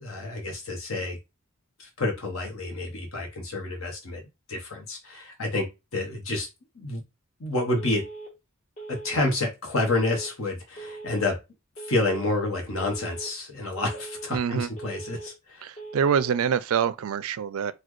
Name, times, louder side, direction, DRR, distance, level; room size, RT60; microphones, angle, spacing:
voice 1, 0.0-1.2 1.8-4.2 4.5-5.7 5.9-6.5 6.8-7.0 7.4-8.0 8.9-11.4 11.9-15.6, left 2 dB, 65° left, 1.0 m, -29 dB
Telephone, 7.8-8.3 8.8-9.3 9.8-10.3 10.8-11.3 11.8-12.3 12.8-13.3 13.8-14.3 14.8-15.3 15.8-16.3, right 3 dB, 35° left, 1.2 m, -40 dB
voice 2, 14.3-14.7 15.6-17.7, right 7 dB, 70° right, 0.3 m, -25 dB
4.1 x 2.2 x 3.1 m
head